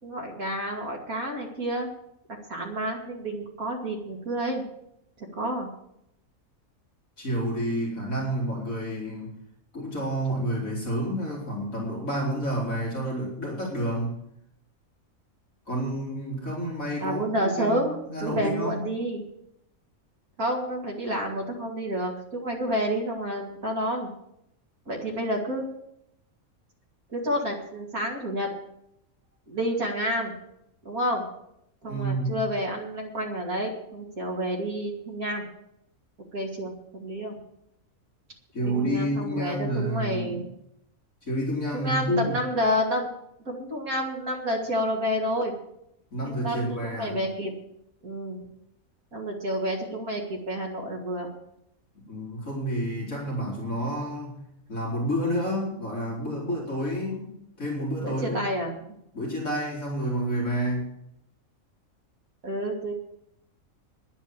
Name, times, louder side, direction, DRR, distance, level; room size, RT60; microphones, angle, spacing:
voice 1, 0.0-1.9 2.5-4.6 5.2-5.7 17.0-19.3 20.4-24.1 24.9-25.7 27.1-28.5 29.5-30.3 30.8-31.2 31.8-35.4 36.3-37.4 38.6-40.4 41.7-43.1 43.5-45.5 46.2-47.5 48.0-48.4 49.1-51.3 58.0-58.8 62.4-62.9, equal, 85° right, -2 dB, 3.0 m, -29 dB
voice 2, 7.2-9.3 9.7-14.1 15.7-18.9 31.9-32.4 38.5-40.4 41.2-42.4 46.1-47.2 52.1-54.4 54.7-58.5 59.1-60.9, equal, 70° left, -4 dB, 4.2 m, -29 dB
10.5 x 10.0 x 7.4 m, 0.78 s
omnidirectional pair, 1.5 m